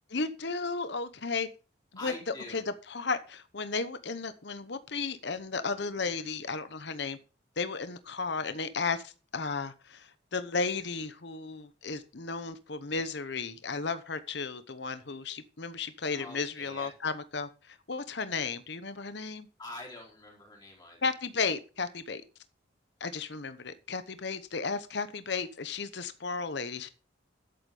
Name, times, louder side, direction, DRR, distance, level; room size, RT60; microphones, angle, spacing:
voice 1, 0.1-1.5 2.0-7.2 7.6-19.5 21.0-22.2 23.0-26.9, left 4 dB, 60° left, 1.0 m, -34 dB
voice 2, 2.0-2.6 16.1-16.9 19.6-21.1, left 2 dB, 20° left, 4.3 m, -45 dB
12.0 x 8.3 x 5.3 m
head